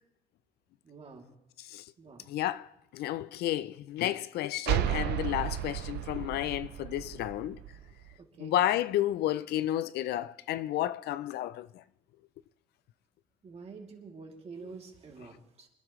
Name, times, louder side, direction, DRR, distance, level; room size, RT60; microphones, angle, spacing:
voice 1, 0.8-1.3 2.0-2.3 8.2-8.6 13.4-15.7, right 4 dB, 35° right, 2.8 m, -48 dB
voice 2, 2.3-7.6 8.4-11.8, left 13 dB, 70° left, 0.5 m, -31 dB
sound 1, 4.6-8.2, right 13 dB, 80° right, 0.6 m, -33 dB
26.0 x 11.0 x 3.2 m
cardioid pair, 110°, 17 cm